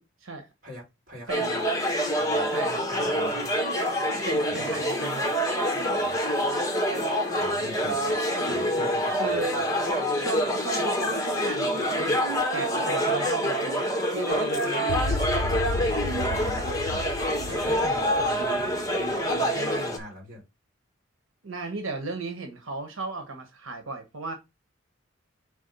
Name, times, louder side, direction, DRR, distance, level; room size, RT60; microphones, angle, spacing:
voice 1, 0.0-0.5 1.3-1.5 2.5-2.8 4.2-5.3 8.7-9.6 10.2-12.3 12.5-13.9 14.1-15.2 17.5-17.7 21.4-24.3, right 3 dB, 80° right, 1.2 m, -35 dB
voice 2, 0.6-1.7 2.1-3.6 4.5-4.8 5.9-6.2 7.4-8.2 8.4-9.6 16.1-17.1 17.6-20.4, equal, 40° right, 4.0 m, -42 dB
sound 1, 1.3-20.0, equal, 15° left, 1.3 m, -26 dB
sound 2, 14.9-19.2, left 4 dB, 85° left, 0.5 m, -32 dB
5.3 x 3.7 x 5.3 m
head